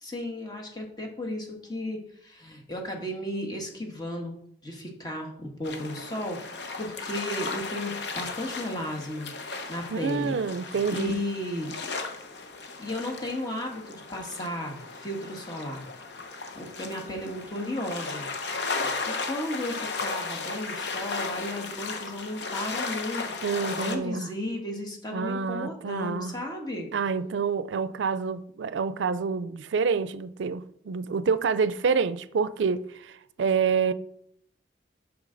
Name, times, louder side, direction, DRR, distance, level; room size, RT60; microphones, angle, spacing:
voice 1, 0.0-9.3 9.7-10.4 10.9-11.8 12.8-15.9 16.5-18.3 18.8-26.9, left 1 dB, 20° left, 1.4 m, -34 dB
sound 1, 5.6-24.0, left 4 dB, 70° left, 0.9 m, -35 dB
voice 2, 9.9-11.2 23.4-24.3 25.1-26.3 26.9-33.9, right 5 dB, 85° right, 0.4 m, -27 dB
8.1 x 6.1 x 3.9 m
head